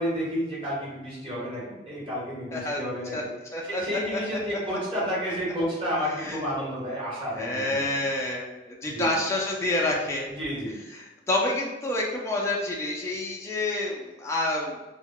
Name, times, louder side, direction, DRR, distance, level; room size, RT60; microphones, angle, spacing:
voice 1, 0.0-3.2 3.6-8.0 8.8-9.1 10.3-10.7, equal, 30° right, -7 dB, 1.1 m, -31 dB
voice 2, 2.5-2.8 3.1-3.2 3.5-4.4 4.7-4.8 6.2-6.4 7.3-10.3 10.9-14.8, left 2 dB, 15° left, -2 dB, 0.3 m, -28 dB
2.2 x 2.1 x 3.7 m, 1.1 s
head